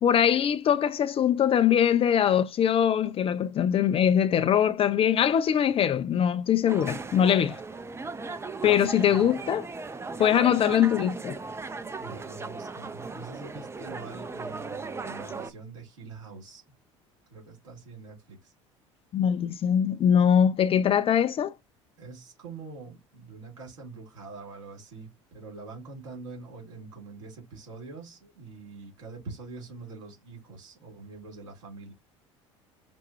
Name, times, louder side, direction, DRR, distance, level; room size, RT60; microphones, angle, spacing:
voice 1, 0.0-7.6 8.6-9.7 10.2-11.4 19.1-21.5, left 9 dB, 35° left, 0.5 m, -22 dB
sound 1, 6.7-15.5, right 4 dB, 15° right, 0.6 m, -37 dB
voice 2, 8.6-9.3 12.0-16.6 17.3-18.5 22.0-31.9, right 4 dB, 75° right, 3.2 m, -44 dB
6.0 x 2.3 x 2.9 m
hypercardioid pair, 65°, 16 cm